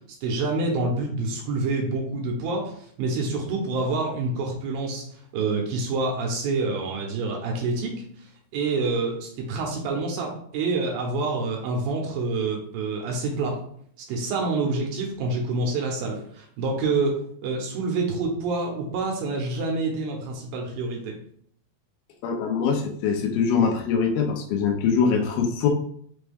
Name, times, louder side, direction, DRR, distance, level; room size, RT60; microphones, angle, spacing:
voice 1, 0.2-5.1 5.3-8.0 8.5-13.6 14.1-21.2, right 3 dB, 75° right, 1 dB, 2.5 m, -27 dB
voice 2, 22.2-25.7, left 6 dB, 80° left, 3 dB, 2.4 m, -23 dB
6.1 x 2.3 x 3.4 m, 0.63 s
omnidirectional pair, 4.3 m